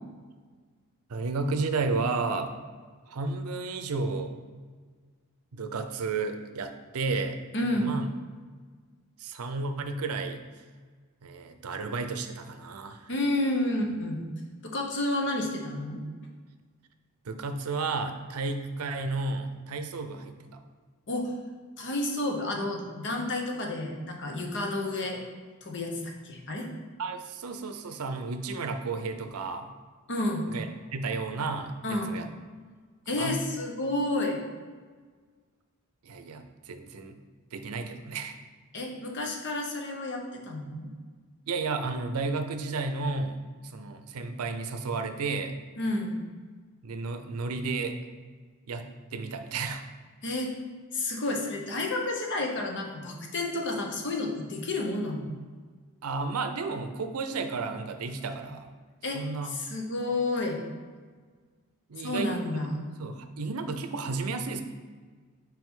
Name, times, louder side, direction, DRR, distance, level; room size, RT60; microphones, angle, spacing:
voice 1, 1.1-2.5 3.1-4.3 5.5-7.4 7.8-8.1 9.2-10.4 11.2-13.1 17.2-20.6 27.0-29.7 30.5-30.7 30.9-32.3 33.1-33.4 36.0-37.2 37.5-38.3 41.5-43.4 43.6-45.5 46.8-48.0 48.7-49.8 56.0-58.7 59.1-59.6 61.9-62.3 63.0-64.6, right 3 dB, 75° right, 8 dB, 0.6 m, -32 dB
voice 2, 7.5-7.9 13.1-14.3 14.6-16.0 21.1-21.3 21.8-25.2 25.6-26.7 30.1-30.5 31.8-32.1 32.5-32.6 33.1-34.4 38.7-40.9 45.8-46.3 50.2-50.5 50.9-55.3 59.0-60.6 62.0-62.9, left 1 dB, 55° left, 1 dB, 0.9 m, -30 dB
6.0 x 4.9 x 3.7 m, 1.5 s
head